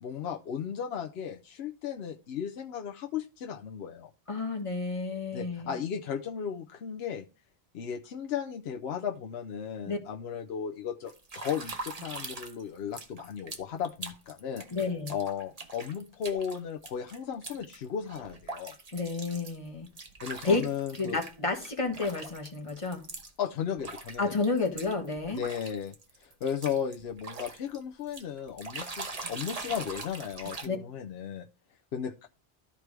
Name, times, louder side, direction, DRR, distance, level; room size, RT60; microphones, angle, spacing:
voice 1, 0.0-4.1 5.3-7.2 7.7-14.7 15.1-18.8 20.2-21.2 23.4-24.3 25.3-31.5 31.9-32.3, left 8 dB, 70° left, 3 dB, 0.9 m, -35 dB
voice 2, 4.3-5.7 9.9-10.0 14.7-15.1 18.9-19.9 20.4-20.6 21.0-23.0 24.2-25.4 30.6-30.8, left 3 dB, 30° left, 2 dB, 1.5 m, -30 dB
sound 1, 11.1-12.6 12.9-21.3 21.6-23.3 23.8-27.8 28.1-30.7, right 3 dB, 35° right, 1.1 m, -42 dB
13.5 x 4.7 x 3.3 m, 0.32 s
omnidirectional pair, 1.2 m